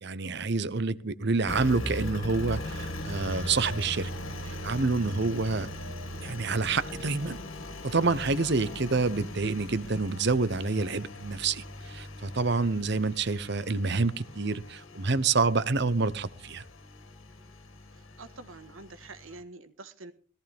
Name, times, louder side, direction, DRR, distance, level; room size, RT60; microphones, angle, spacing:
voice 1, 0.0-4.1 4.4-5.7 6.2-7.4 7.8-16.6, right 3 dB, 55° right, 17 dB, 0.8 m, -28 dB
Engine, 1.5-19.4, left 1 dB, 80° left, 2.2 m, -40 dB
voice 2, 17.9-20.1, right 3 dB, 80° right, 11 dB, 1.6 m, -47 dB
17.5 x 14.5 x 3.5 m, 0.38 s
head